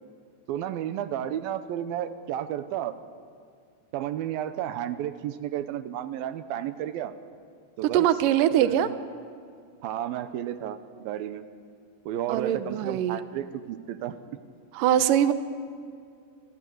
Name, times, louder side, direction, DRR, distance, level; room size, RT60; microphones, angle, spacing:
voice 1, 0.5-2.9 3.9-7.1 7.8-8.1 8.6-8.9 9.8-11.4 12.1-14.2, right 11 dB, 90° right, 11 dB, 2.8 m, -32 dB
voice 2, 7.8-8.9 12.3-13.2 14.7-15.3, right 11 dB, 70° right, 10 dB, 2.5 m, -22 dB
29.5 x 23.5 x 8.0 m, 2.2 s
omnidirectional pair, 4.1 m